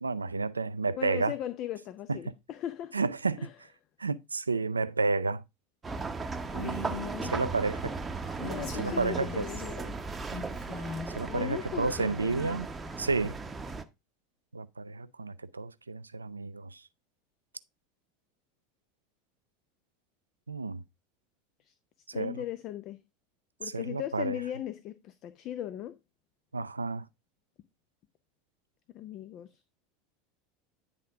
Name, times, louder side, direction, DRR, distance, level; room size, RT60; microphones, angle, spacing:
voice 1, 0.0-1.3 2.1-2.2 2.9-3.5 4.0-5.4 7.3-7.9 8.8-9.5 11.1-12.7 13.0-13.3 14.5-16.8 20.5-20.8 22.1-22.4 23.7-24.4 26.5-27.0, right 4 dB, 85° right, 0.4 m, -31 dB
voice 2, 1.0-3.1 3.4-3.5 6.7-7.5 8.4-10.0 11.3-12.6 21.6-21.7 22.1-23.0 23.6-25.9 28.9-29.7, left 12 dB, 45° left, 0.5 m, -38 dB
sound 1, 5.8-13.8, right 3 dB, 20° right, 0.8 m, -37 dB
Female speech woman speaking, 6.5-7.2 8.3-9.8 10.3-11.2, left 2 dB, 65° left, 4.5 m, -39 dB
9.8 x 3.7 x 4.5 m
figure-of-eight pair, 75°, 0 cm